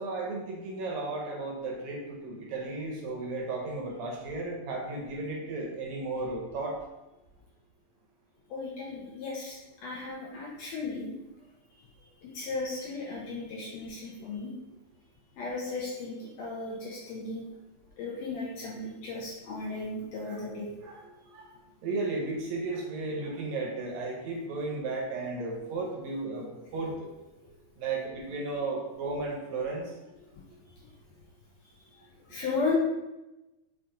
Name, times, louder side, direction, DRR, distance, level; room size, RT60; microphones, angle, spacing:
voice 1, 0.0-6.7 20.3-20.4 20.8-20.9 21.8-27.1 27.8-29.8, right 3 dB, 75° right, -1 dB, 1.7 m, -34 dB
voice 2, 8.5-11.1 12.2-14.5 15.4-17.5 18.0-20.7 27.4-27.5 30.3-30.4 32.3-32.8, left 3 dB, 80° left, -4 dB, 1.6 m, -35 dB
5.7 x 2.5 x 3.7 m, 1.0 s
omnidirectional pair, 3.8 m